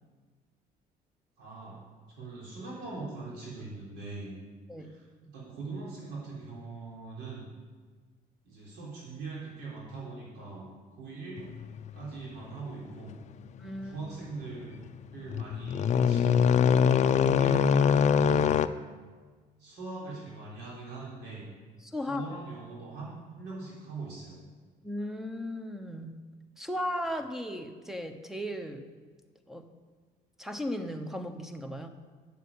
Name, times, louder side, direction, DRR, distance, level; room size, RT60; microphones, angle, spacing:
voice 1, 1.4-1.8 2.1-4.3 4.9-7.5 8.5-11.5 11.9-13.1 13.8-14.8 15.1-18.6 19.6-21.4 22.0-24.4, right 3 dB, 80° right, -5 dB, 3.6 m, -41 dB
voice 2, 4.7-5.1 13.6-14.1 21.8-22.4 24.8-26.3 26.6-28.9 29.5-29.7 30.4-31.9, left 1 dB, ahead, 7 dB, 1.0 m, -36 dB
sound 1, 11.4-11.9 12.4-12.6 13.1-13.3 13.6-14.1 14.5-14.6 15.1-18.7, left 7 dB, 45° left, 0.4 m, -23 dB
8.1 x 7.3 x 8.4 m, 1.4 s
cardioid pair, 110°, 17 cm